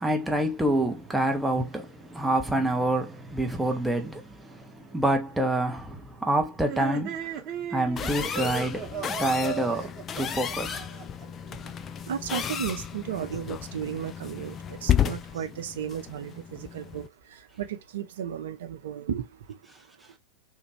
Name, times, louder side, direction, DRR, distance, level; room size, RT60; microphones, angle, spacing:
voice 1, 0.0-7.4 7.7-9.9 10.2-10.8, right 1 dB, 5° right, 0.7 m, -27 dB
sound 1, 6.6-11.2, right 8 dB, 35° right, 1.0 m, -36 dB
sound 2, 8.0-17.1, left 9 dB, 25° left, 0.3 m, -32 dB
voice 2, 12.1-17.0 17.6-19.2, right 9 dB, 60° right, 0.6 m, -34 dB
3.5 x 2.5 x 3.1 m
figure-of-eight pair, 90°, 0 cm